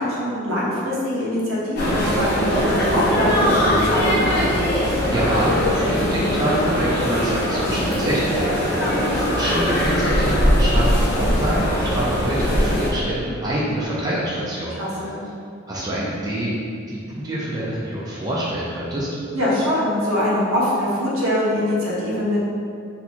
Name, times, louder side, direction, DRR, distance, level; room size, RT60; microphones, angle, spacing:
voice 1, 0.0-4.3 8.8-9.0 14.8-15.2 19.3-22.4, left 1 dB, 80° right, -6 dB, 0.9 m, -23 dB
sound 1, 1.8-12.9, equal, 50° left, 0.8 m, -20 dB
voice 2, 5.0-15.1 15.7-16.5 16.9-19.1, right 1 dB, 20° right, -7 dB, 0.5 m, -26 dB
2.8 x 2.3 x 4.2 m, 2.4 s
head